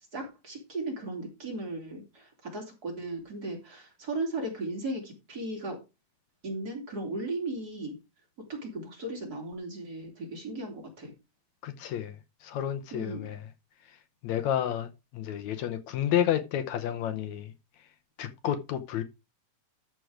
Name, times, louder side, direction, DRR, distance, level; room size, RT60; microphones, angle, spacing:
voice 1, 0.1-5.8 6.4-8.0 8.5-11.1 12.9-13.3, right 2 dB, 30° right, 3.4 m, -36 dB
voice 2, 11.6-13.5 13.8-17.5 17.8-17.9 18.2-19.0, left 10 dB, 70° left, 1.9 m, -31 dB
13.0 x 4.7 x 4.9 m
omnidirectional pair, 3.8 m